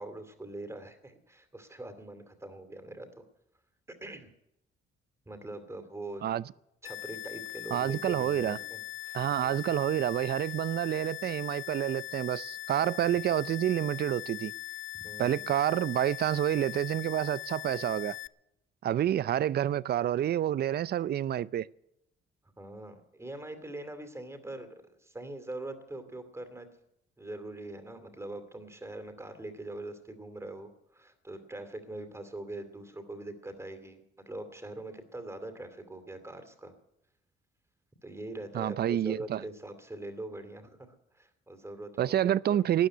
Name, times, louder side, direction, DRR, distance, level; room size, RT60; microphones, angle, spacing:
voice 1, 0.0-3.1 3.9-4.3 5.3-6.2 6.8-9.6 14.9-15.4 19.0-19.3 22.6-26.7 27.2-36.7 38.0-40.9 41.1-42.6, right 2 dB, 15° right, 2.5 m, -43 dB
sound 1, 6.8-18.3, left 18 dB, 75° left, 0.4 m, -41 dB
voice 2, 7.7-8.6 9.1-14.5 15.2-18.2 18.8-21.7 38.5-39.4 42.0-42.9, right 11 dB, 55° right, 0.5 m, -28 dB
13.0 x 9.4 x 9.7 m
cardioid pair, 90°, 20 cm